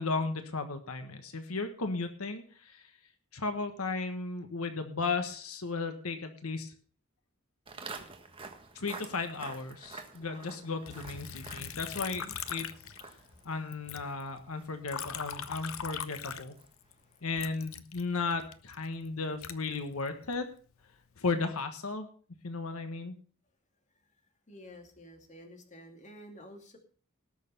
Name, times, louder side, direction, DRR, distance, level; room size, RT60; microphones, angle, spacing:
voice 1, 0.0-2.9 3.3-6.7 8.7-12.7 13.4-16.5 17.2-20.4 21.2-22.1 22.4-23.1, left 3 dB, 90° left, 7 dB, 1.4 m, -35 dB
Walk footsteps, 7.7-16.9, right 4 dB, 25° right, 1.5 m, -49 dB
voice 2, 10.1-10.8 11.6-11.8 12.1-12.4 13.1-13.4 16.8-17.3 18.9-19.0 24.5-26.8, equal, 35° left, 4 dB, 2.5 m, -52 dB
Liquid, 10.9-13.4 13.7-16.9 17.4-20.4 20.9-21.5, left 8 dB, 70° left, 0.8 m, -41 dB
18.5 x 6.7 x 5.4 m, 0.43 s
head